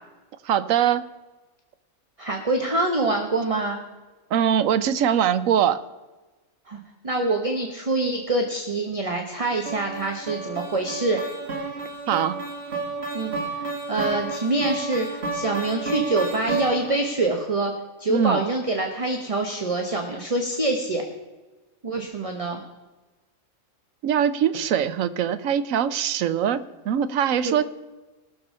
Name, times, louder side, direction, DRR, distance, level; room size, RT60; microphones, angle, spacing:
voice 1, 0.4-1.1 4.3-5.8 12.1-12.4 18.1-18.4 24.0-27.6, right 9 dB, 80° right, 14 dB, 1.0 m, -22 dB
voice 2, 2.2-3.8 6.7-11.2 13.1-17.7 18.0-21.0 21.8-22.6 27.4-27.6, right 2 dB, 30° right, 3 dB, 1.0 m, -25 dB
sound 1, 9.7-17.1, right 3 dB, 50° right, 2.1 m, -31 dB
18.5 x 6.9 x 5.4 m, 1.2 s
omnidirectional pair, 1.4 m